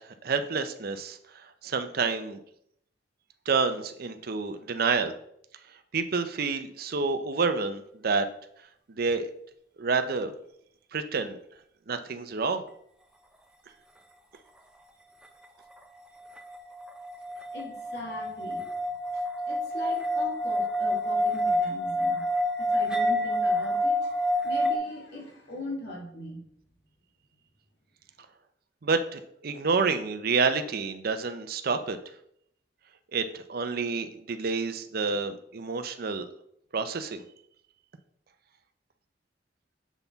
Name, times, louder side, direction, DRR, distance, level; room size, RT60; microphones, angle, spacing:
voice 1, 0.2-1.2 1.6-2.4 3.5-5.1 5.9-8.2 9.0-9.3 9.8-10.3 10.9-11.4 11.9-12.6 28.8-32.0 33.1-36.3 36.7-37.2, right 4 dB, 55° right, 9 dB, 0.6 m, -28 dB
sound 1, 16.4-24.8, left 1 dB, 5° right, 0.5 m, -28 dB
voice 2, 17.5-18.7 19.5-22.3 22.6-26.5, left 1 dB, 65° left, -1 dB, 1.8 m, -40 dB
7.1 x 4.0 x 4.0 m, 0.70 s
head